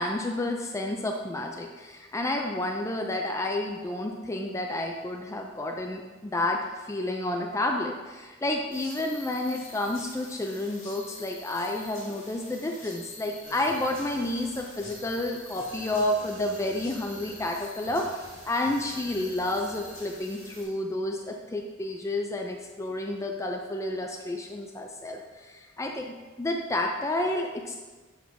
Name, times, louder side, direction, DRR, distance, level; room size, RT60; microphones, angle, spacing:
voice 1, 0.0-27.8, left 1 dB, 15° left, 2 dB, 0.4 m, -30 dB
sound 1, 8.7-20.6, left 2 dB, 75° left, 2.3 m, -47 dB
sound 2, 13.4-20.8 21.1-21.3, right 1 dB, 65° right, 1.5 m, -48 dB
7.1 x 3.4 x 6.2 m, 1.3 s
head